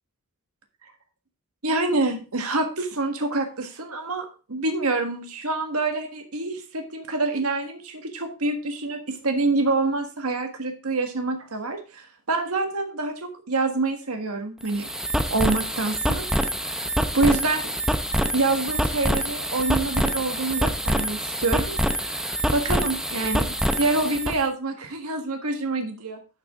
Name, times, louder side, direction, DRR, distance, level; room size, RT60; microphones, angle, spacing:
voice 1, 1.6-14.9 15.3-16.2 16.6-16.8 17.1-17.7 18.3-26.2, right 3 dB, 75° right, 5 dB, 1.6 m, -26 dB
sound 1, 14.6-24.4, right 1 dB, 5° right, 0.6 m, -26 dB
11.5 x 6.2 x 3.6 m, 0.34 s
head